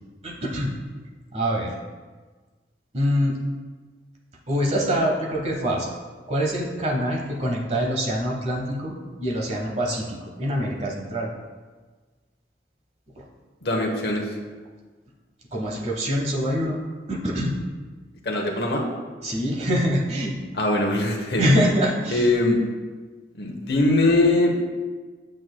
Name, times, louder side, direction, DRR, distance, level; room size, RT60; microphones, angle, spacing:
voice 1, 0.2-0.7 1.3-1.7 2.9-3.4 4.5-5.9 6.3-11.3 13.2-13.3 15.5-16.8 17.1-17.5 19.2-20.4 21.4-22.3, equal, 35° right, -1 dB, 1.2 m, -24 dB
voice 2, 13.6-14.2 18.2-18.8 20.5-21.5 22.1-22.6 23.3-24.5, left 2 dB, 60° left, 0 dB, 0.9 m, -21 dB
8.2 x 7.5 x 2.2 m, 1.4 s
head